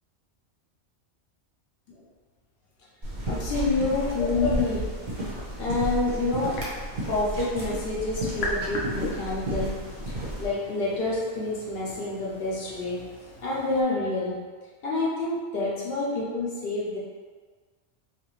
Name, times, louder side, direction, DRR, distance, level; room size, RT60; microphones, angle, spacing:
sound 1, 3.0-10.5, right 1 dB, 45° right, 0.8 m, -33 dB
voice 1, 3.3-5.0 5.6-6.6 7.1-10.0 10.4-13.1 13.4-14.5 14.8-17.0, left 2 dB, 60° left, -6 dB, 0.9 m, -28 dB
sound 2, 4.0-13.8, left 2 dB, 85° left, 0.9 m, -40 dB
2.7 x 2.4 x 3.1 m, 1.5 s
omnidirectional pair, 1.2 m